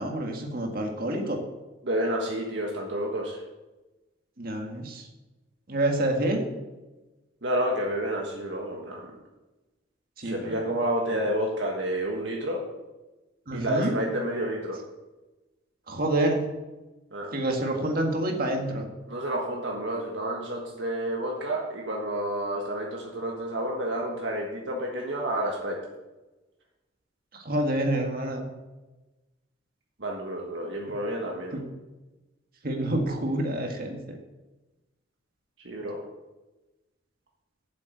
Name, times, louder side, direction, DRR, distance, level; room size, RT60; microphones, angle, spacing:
voice 1, 0.0-1.4 4.4-5.0 5.7-6.4 10.2-10.6 13.5-13.9 15.9-16.5 17.3-18.9 27.3-28.5 30.9-31.0 31.5-31.7 32.6-34.2, right 1 dB, 50° right, 2 dB, 1.8 m, -28 dB
voice 2, 1.8-3.4 7.4-9.1 10.2-12.6 13.5-14.8 17.1-17.3 19.1-25.8 30.0-31.6 35.6-36.0, right 1 dB, 65° right, 0 dB, 1.5 m, -30 dB
8.0 x 7.6 x 7.9 m, 1.1 s
head